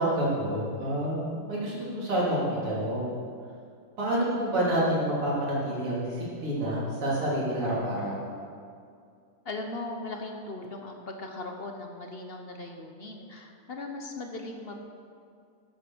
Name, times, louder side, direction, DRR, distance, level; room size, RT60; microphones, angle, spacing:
voice 1, 0.0-3.1 4.0-8.2, right 1 dB, 80° right, -6 dB, 4.2 m, -28 dB
voice 2, 9.4-14.8, left 2 dB, 50° left, 3 dB, 0.7 m, -38 dB
13.0 x 8.7 x 6.2 m, 2.3 s
omnidirectional pair, 2.4 m